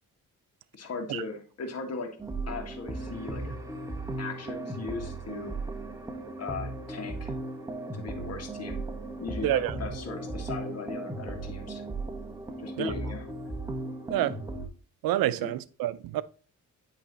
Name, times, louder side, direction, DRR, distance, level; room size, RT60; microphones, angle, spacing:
voice 1, 0.7-2.1 2.5-3.5 4.2-5.6 6.4-7.3 7.9-8.9 9.2-11.8 12.6-13.3 15.4-15.5, left 4 dB, 45° left, 1.6 m, -38 dB
sound 1, 2.2-14.7, right 2 dB, 10° right, 1.4 m, -36 dB
voice 2, 9.4-9.8 12.8-12.9 14.1-14.4 15.0-16.2, right 13 dB, 85° right, 0.5 m, -28 dB
8.5 x 3.2 x 4.0 m
cardioid pair, 75°, 34 cm